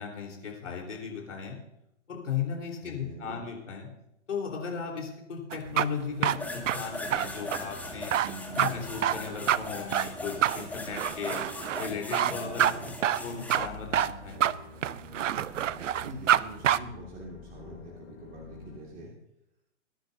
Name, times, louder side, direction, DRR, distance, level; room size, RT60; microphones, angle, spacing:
voice 1, 0.0-1.6 2.1-3.9 4.3-8.1 8.5-11.4 11.8-14.4, left 6 dB, 75° left, 1 dB, 3.9 m, -36 dB
voice 2, 2.8-3.4 8.2-8.8 12.3-13.0 16.0-19.1, right 1 dB, 25° right, -3 dB, 2.2 m, -44 dB
sound 1, 5.5-16.4 16.6-16.8, right 10 dB, 80° right, 0.6 m, -27 dB
sound 2, 6.4-13.6, left 2 dB, 5° left, 1.1 m, -39 dB
sound 3, 13.6-18.8, left 6 dB, 55° left, 4.6 m, -49 dB
21.5 x 10.5 x 2.7 m, 0.84 s
hypercardioid pair, 125°, 37 cm